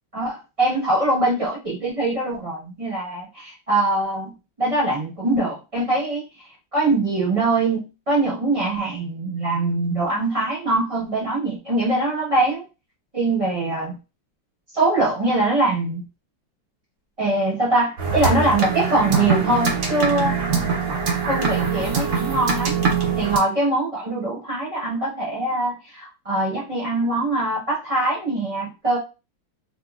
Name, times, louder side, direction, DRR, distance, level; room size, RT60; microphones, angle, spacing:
voice 1, 0.1-4.3 4.6-6.2 6.7-12.6 13.1-13.9 14.7-16.1 17.2-20.4 21.3-22.8 23.2-29.0, right 2 dB, 25° right, -6 dB, 0.9 m, -23 dB
sound 1, 18.0-23.4, right 5 dB, 55° right, 1.0 m, -23 dB
3.0 x 2.7 x 2.3 m, 0.30 s
omnidirectional pair, 2.0 m